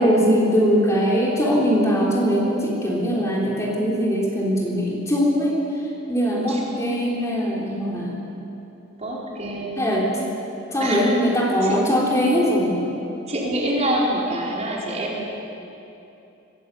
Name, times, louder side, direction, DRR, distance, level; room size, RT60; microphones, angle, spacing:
voice 1, 0.0-5.6 6.1-8.2 9.8-10.1 10.7-12.8, equal, 15° left, -4 dB, 3.7 m, -21 dB
voice 2, 6.5-7.2 9.0-9.8 10.8-11.0 11.6-11.8 13.3-15.3, right 1 dB, 35° right, -4 dB, 4.7 m, -26 dB
21.5 x 19.0 x 8.4 m, 2.8 s
head